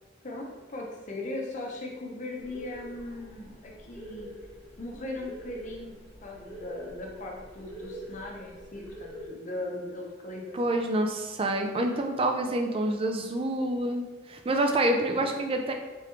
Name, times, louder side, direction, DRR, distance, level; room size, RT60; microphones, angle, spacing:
voice 1, 0.2-4.3 4.8-10.8 15.1-15.3, left 2 dB, 40° left, -1 dB, 0.7 m, -39 dB
sound 1, 2.4-9.3, right 1 dB, ahead, 1.2 m, -45 dB
voice 2, 10.5-15.7, right 1 dB, 30° right, 3 dB, 0.4 m, -27 dB
3.5 x 3.0 x 3.5 m, 1.3 s
head